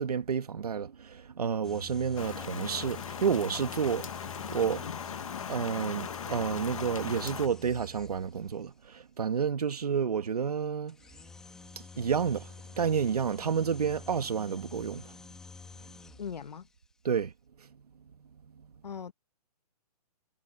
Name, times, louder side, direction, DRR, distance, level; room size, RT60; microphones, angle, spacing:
voice 1, 0.0-4.1 4.5-4.9 5.5-11.0 12.0-12.5 12.8-15.1 17.0-17.3 17.6-17.7, right 7 dB, 70° right, 2.0 m, -30 dB
sound 1, 1.6-8.6 10.9-16.7, left 4 dB, 5° left, 1.3 m, -49 dB
Rain, 2.2-7.5, left 7 dB, 55° left, 1.2 m, -39 dB
voice 2, 16.2-16.7 18.8-19.1, left 7 dB, 85° left, 1.5 m, -39 dB
hypercardioid pair, 180°, 21 cm